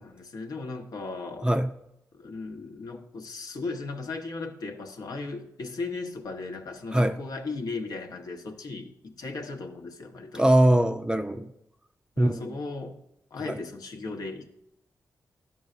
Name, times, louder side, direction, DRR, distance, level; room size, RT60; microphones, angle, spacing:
voice 1, 0.0-1.6 2.1-10.5 12.2-13.0 13.3-14.5, left 3 dB, 70° left, 4 dB, 0.7 m, -36 dB
voice 2, 10.3-11.5 12.2-12.5 13.4-13.6, right 1 dB, 10° right, 10 dB, 0.4 m, -22 dB
11.0 x 5.4 x 2.4 m, 0.79 s
cardioid pair, 55°, 7 cm